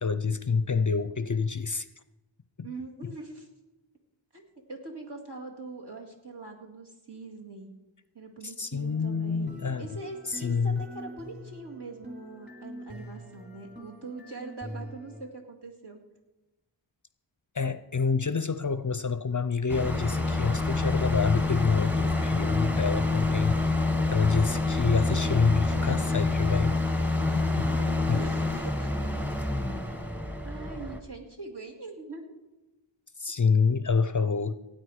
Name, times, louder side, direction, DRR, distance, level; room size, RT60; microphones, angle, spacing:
voice 1, 0.0-1.9 2.6-2.7 8.4-9.9 10.3-10.8 17.5-23.7 24.1-26.8 27.6-27.7 28.1-28.2 33.2-34.5, left 5 dB, 40° left, 13 dB, 0.5 m, -27 dB
voice 2, 2.6-3.5 4.3-7.7 8.1-16.0 27.6-28.9 30.4-32.2, right 3 dB, 60° right, 0 dB, 2.2 m, -42 dB
sound 1, 8.7-15.2, equal, 20° right, 3.2 m, -45 dB
sound 2, 19.7-31.0, left 3 dB, 5° right, 1.1 m, -27 dB
17.0 x 9.1 x 4.8 m, 1.1 s
wide cardioid pair, 40°, 47 cm